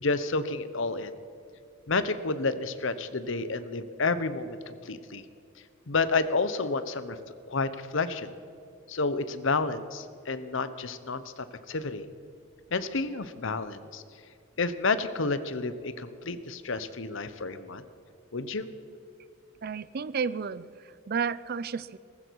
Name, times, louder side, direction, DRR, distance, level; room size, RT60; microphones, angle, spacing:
voice 1, 0.0-1.1 1.9-5.2 5.9-7.2 7.5-8.3 8.9-12.0 12.7-14.0 14.6-17.8 18.3-18.7, left 3 dB, 65° left, 12 dB, 1.0 m, -30 dB
voice 2, 19.6-20.7 21.1-22.0, right 6 dB, 50° right, 17 dB, 0.5 m, -31 dB
18.5 x 15.0 x 4.7 m, 2.5 s
head